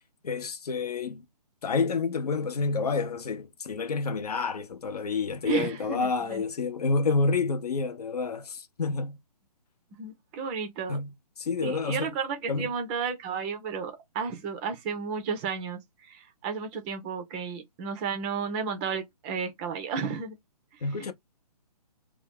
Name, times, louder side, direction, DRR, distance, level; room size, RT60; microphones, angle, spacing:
voice 1, 0.2-1.2 1.6-9.2 10.9-12.1 12.5-12.7 20.8-21.1, left 4 dB, 65° left, 0.7 m, -29 dB
voice 2, 5.5-6.4 10.0-11.0 11.6-20.4 21.0-21.1, right 6 dB, 15° right, 0.5 m, -33 dB
2.6 x 2.3 x 3.4 m
figure-of-eight pair, 140°, 21 cm